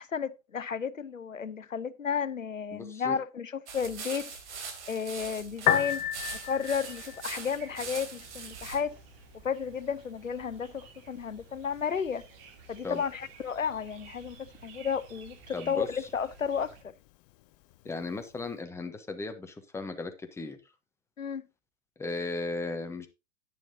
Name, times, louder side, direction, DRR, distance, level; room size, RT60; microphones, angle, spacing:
voice 1, 0.0-4.3 4.9-6.0 6.4-9.0 9.4-12.2 12.7-16.9 21.2-21.4, left 6 dB, 90° left, 0.7 m, -33 dB
voice 2, 2.7-3.2 12.8-13.0 15.5-15.9 17.8-20.6 22.0-23.1, left 3 dB, 5° left, 1.1 m, -36 dB
sound 1, 3.7-8.8, right 5 dB, 65° right, 3.5 m, -42 dB
Piano, 5.5-18.5, left 12 dB, 35° left, 0.6 m, -39 dB
sound 2, 6.4-16.8, right 5 dB, 45° right, 2.3 m, -53 dB
10.5 x 9.8 x 2.8 m
figure-of-eight pair, 105°, 38 cm